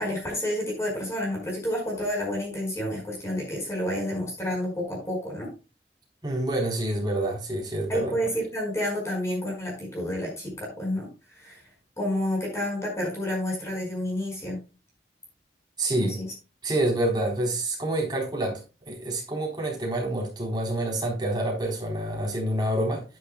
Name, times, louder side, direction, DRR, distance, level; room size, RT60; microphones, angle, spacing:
voice 1, 0.0-5.5 7.9-11.1 11.4-11.6 12.0-14.6 16.0-16.3, equal, 15° left, 5.2 m, -29 dB
voice 2, 6.2-8.1 15.8-16.2 16.6-18.6 18.9-23.0, right 1 dB, 25° right, 3.9 m, -27 dB
11.0 x 10.0 x 2.3 m
head